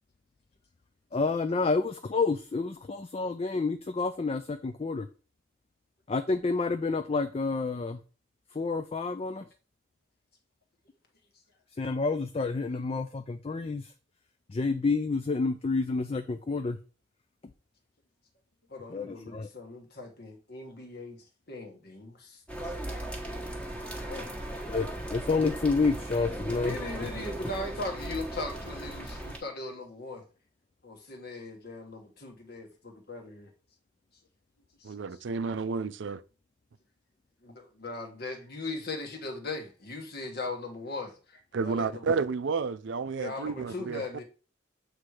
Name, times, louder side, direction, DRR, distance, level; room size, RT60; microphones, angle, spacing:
voice 1, 1.1-5.1 6.1-8.0 8.5-9.4 11.8-13.9 14.5-16.8 18.9-19.5 24.7-26.8, left 4 dB, 30° left, 0.4 m, -29 dB
voice 2, 18.7-22.7 24.0-24.3 26.6-30.2 30.8-33.5 34.8-34.9 37.4-42.1 43.2-44.2, left 2 dB, 50° left, 1.4 m, -39 dB
sound 1, 22.5-29.4, right 1 dB, 5° left, 1.3 m, -37 dB
voice 3, 34.8-36.2 41.5-44.0, right 4 dB, 60° right, 0.4 m, -31 dB
7.8 x 3.2 x 4.8 m
head